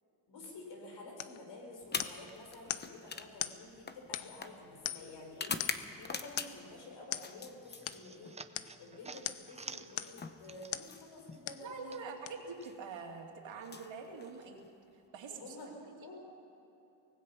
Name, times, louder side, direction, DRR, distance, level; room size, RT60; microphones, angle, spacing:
voice 1, 0.3-8.4 8.8-12.1 15.3-16.3, left 2 dB, 65° left, 1 dB, 5.6 m, -50 dB
sound 1, 1.2-1.4 2.0-2.3 2.7-2.9 3.4-3.6 4.1-4.5 4.8-5.2 5.6-5.9 6.4-6.6 7.1-7.3 7.9-8.0 8.5-8.7 9.2-9.5 10.0-10.2 10.7-10.9 11.5-11.7 12.3-12.4, left 12 dB, 90° left, 0.9 m, -40 dB
sound 2, 1.8-6.8 7.1-8.4 9.6-11.4 12.5-12.8 13.5-14.7, left 5 dB, 20° left, 0.8 m, -43 dB
sound 3, 7.4-11.0 11.3-12.7, right 4 dB, 15° right, 0.4 m, -51 dB
voice 2, 11.6-14.6 14.9-15.6, right 5 dB, 75° right, 1 dB, 2.9 m, -45 dB
24.5 x 19.5 x 5.7 m, 3.0 s
wide cardioid pair, 170°, 46 cm